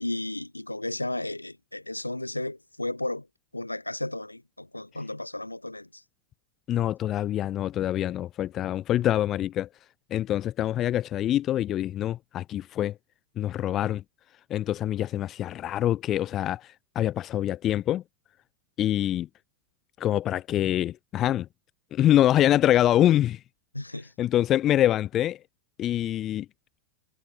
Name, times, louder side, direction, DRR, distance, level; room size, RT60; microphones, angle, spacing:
voice 1, 0.0-3.3 3.5-6.0 23.7-24.1, left 1 dB, 85° left, 1.9 m, -34 dB
voice 2, 6.7-9.7 10.1-12.9 13.4-14.0 14.5-18.0 18.8-19.3 20.0-21.5 21.9-23.4 24.2-25.4 25.8-26.5, left 12 dB, 30° left, 2.1 m, -25 dB
figure-of-eight pair, 90°, 0 cm